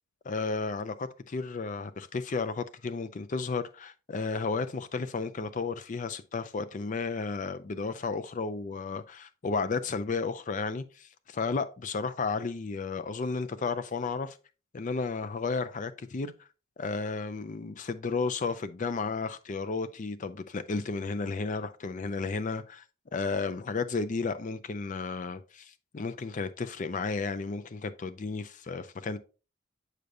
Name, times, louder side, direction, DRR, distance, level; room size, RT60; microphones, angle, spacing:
voice 1, 0.2-14.4 14.7-16.3 16.8-22.8 23.1-29.2, left 4 dB, 35° left, 0.4 m, -33 dB
7.9 x 5.0 x 2.6 m
head